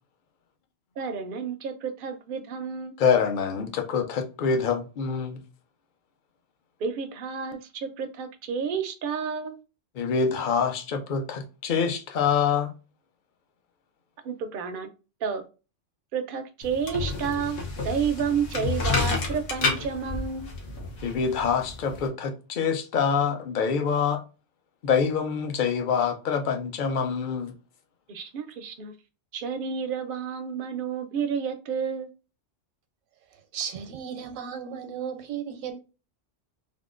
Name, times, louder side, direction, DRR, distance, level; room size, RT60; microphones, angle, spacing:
voice 1, 1.0-3.0 6.8-9.6 14.2-14.9 15.2-15.4 16.1-20.5 28.1-28.9 29.3-32.1, right 6 dB, 60° right, 0.6 m, -30 dB
voice 2, 3.0-5.4 10.0-12.7 21.0-24.2 24.8-27.5, left 6 dB, 55° left, 0.6 m, -25 dB
sound 1, 16.6-22.1, left 4 dB, 75° left, 1.2 m, -30 dB
voice 3, 33.5-35.8, right 7 dB, 85° right, 1.0 m, -35 dB
3.5 x 2.4 x 2.4 m
omnidirectional pair, 1.3 m